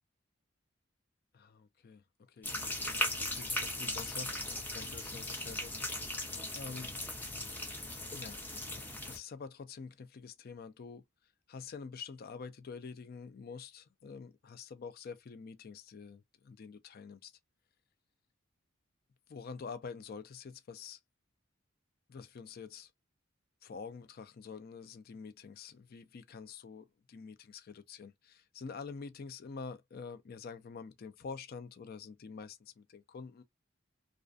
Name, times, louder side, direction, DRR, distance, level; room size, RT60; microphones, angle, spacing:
voice 1, 1.3-2.0 2.3-5.8 6.5-6.9 8.1-11.0 11.5-17.3 19.3-21.0 22.1-22.9 23.6-33.4, left 5 dB, 50° left, 0.4 m, -47 dB
sound 1, 2.4-9.2, left 1 dB, 10° left, 0.6 m, -38 dB
2.4 x 2.1 x 2.5 m
head